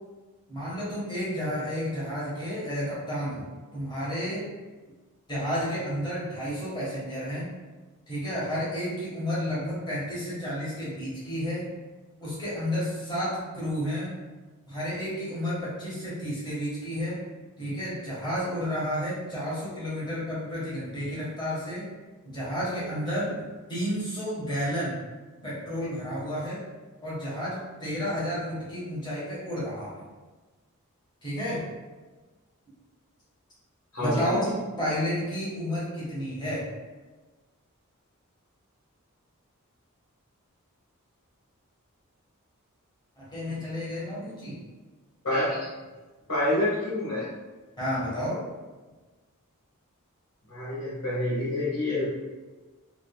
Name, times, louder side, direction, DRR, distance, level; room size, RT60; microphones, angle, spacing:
voice 1, 0.5-3.5 3.7-4.5 5.3-7.5 8.1-11.7 12.2-14.1 14.6-17.2 17.6-21.9 22.2-23.4 23.7-25.0 25.4-26.6 27.0-30.0 31.2-31.7 34.0-36.7 43.2-44.6 47.8-48.4, equal, 20° left, -8 dB, 1.4 m, -31 dB
voice 2, 45.2-45.6 46.3-47.3 50.5-52.1, left 1 dB, 65° left, -10 dB, 1.4 m, -27 dB
3.6 x 3.1 x 2.3 m, 1.3 s
head